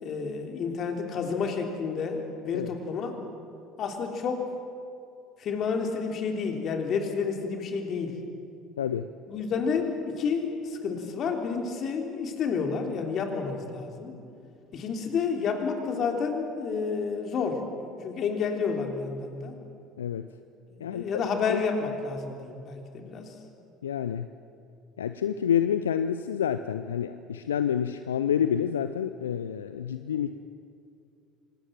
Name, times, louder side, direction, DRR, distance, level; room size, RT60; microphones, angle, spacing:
voice 1, 0.0-3.2 3.8-4.5 5.4-8.2 9.3-14.2 14.7-19.6 20.8-23.3, left 5 dB, 50° left, 4 dB, 3.2 m, -30 dB
voice 2, 8.8-9.1 20.0-20.3 20.8-21.2 21.5-21.6 23.8-24.3 25.0-30.3, left 9 dB, 80° left, 11 dB, 0.5 m, -28 dB
25.0 x 19.0 x 7.5 m, 2.5 s
figure-of-eight pair, 65°, 0 cm